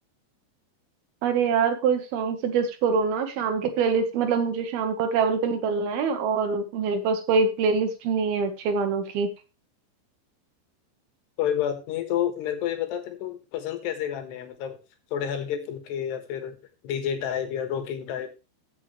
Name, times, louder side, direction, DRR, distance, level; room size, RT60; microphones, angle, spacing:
voice 1, 1.2-9.3, right 5 dB, 70° right, 8 dB, 2.8 m, -24 dB
voice 2, 11.4-14.8 15.1-16.6 16.8-18.3, left 9 dB, 75° left, 8 dB, 3.5 m, -29 dB
15.5 x 7.5 x 3.2 m, 0.30 s
omnidirectional pair, 5.1 m